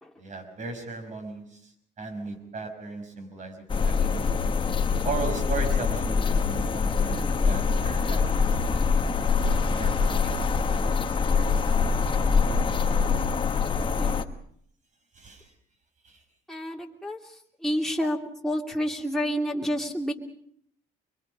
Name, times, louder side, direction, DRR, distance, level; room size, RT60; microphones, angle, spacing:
voice 1, 0.2-4.3 5.0-8.7 9.4-11.0 11.3-11.5 12.0-12.8 15.1-15.5 16.0-16.2, right 4 dB, 45° right, 7 dB, 5.5 m, -38 dB
sound 1, 3.7-14.2, left 5 dB, 30° left, 1.3 m, -24 dB
voice 2, 16.5-17.2 17.6-18.2 18.4-20.1, equal, ahead, 0 dB, 2.9 m, -29 dB
24.5 x 23.0 x 5.4 m, 0.65 s
cardioid pair, 110°, 17 cm